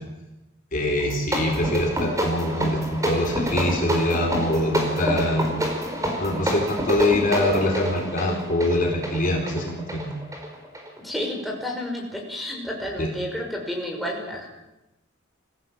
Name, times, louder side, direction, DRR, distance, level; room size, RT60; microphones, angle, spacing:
voice 1, 0.7-5.5 6.2-10.1 13.0-13.1, left 1 dB, 45° left, 1 dB, 4.2 m, -24 dB
sound 1, 1.0-11.3, equal, 15° right, 4.8 m, -28 dB
voice 2, 11.0-14.5, left 1 dB, ahead, 0 dB, 5.7 m, -31 dB
25.5 x 16.0 x 7.6 m, 0.94 s
head